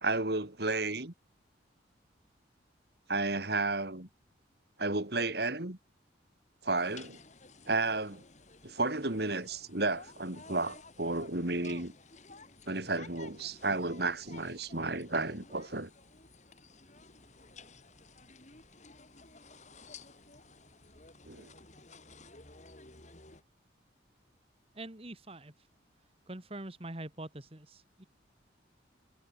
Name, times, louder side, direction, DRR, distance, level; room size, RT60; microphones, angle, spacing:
voice 1, 0.0-1.1 3.1-4.1 4.8-5.8 6.6-7.2 7.7-8.2 8.6-11.9 12.7-15.9 21.3-21.5, right 2 dB, 55° right, 2.5 m, -32 dB
sound 1, 6.7-23.4, left 3 dB, 40° left, 3.5 m, -54 dB
voice 2, 24.7-25.7 26.3-28.0, right 1 dB, 30° right, 1.7 m, -44 dB
head